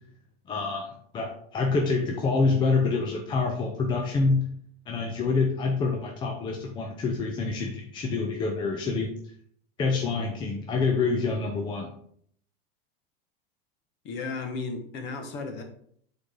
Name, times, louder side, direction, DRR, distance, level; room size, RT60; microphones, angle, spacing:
voice 1, 0.5-4.4 4.9-9.1 9.8-11.9, left 4 dB, 15° left, 2 dB, 0.5 m, -26 dB
voice 2, 14.0-15.6, left 4 dB, 35° left, 5 dB, 1.2 m, -34 dB
8.3 x 4.0 x 3.7 m, 0.64 s
supercardioid pair, 155°, 30 cm